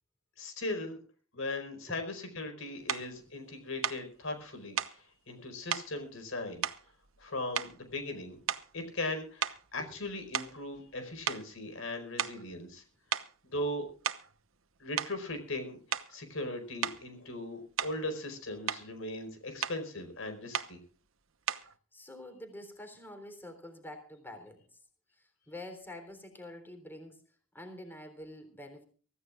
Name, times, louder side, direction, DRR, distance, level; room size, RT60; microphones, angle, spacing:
voice 1, 0.4-1.0 1.3-6.6 7.2-8.4 8.7-12.8 13.5-13.9 14.8-20.8, left 2 dB, 75° left, 7 dB, 4.8 m, -38 dB
sound 1, 2.9-3.1 3.8-4.1 4.8-5.0 5.7-5.9 6.6-7.2 7.5-7.9 8.4-8.8 9.4-11.0 11.3-11.5 12.2-12.5 13.1-13.3 13.9-14.3 15.0-15.2 15.9-16.2 16.8-17.0 17.8-18.1 18.4-18.9 19.6-19.8 20.5-20.8 21.5-21.7, right 9 dB, 75° right, 1.0 m, -35 dB
voice 2, 21.9-24.7 25.1-27.2 27.5-28.8, left 1 dB, 10° left, 6 dB, 3.5 m, -47 dB
24.0 x 15.0 x 2.4 m, 0.40 s
head